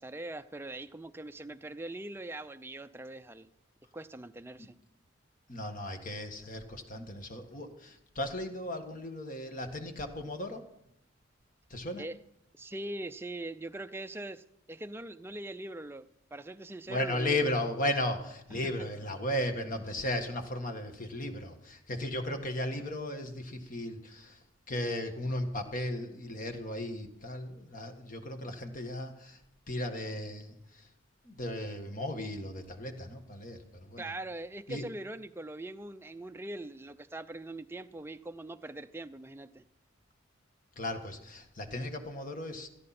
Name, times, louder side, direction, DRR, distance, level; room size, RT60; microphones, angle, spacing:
voice 1, 0.0-3.5 3.9-4.8 12.0-12.2 12.5-17.5 18.5-18.6 34.0-39.6, right 2 dB, 10° right, 9 dB, 0.5 m, -42 dB
voice 2, 5.5-10.6 11.7-12.1 16.9-24.4 24.7-29.4 29.7-30.9 31.2-34.1 34.7-34.9 40.7-42.7, left 1 dB, 40° left, 6 dB, 1.6 m, -35 dB
17.5 x 14.0 x 4.3 m, 0.80 s
head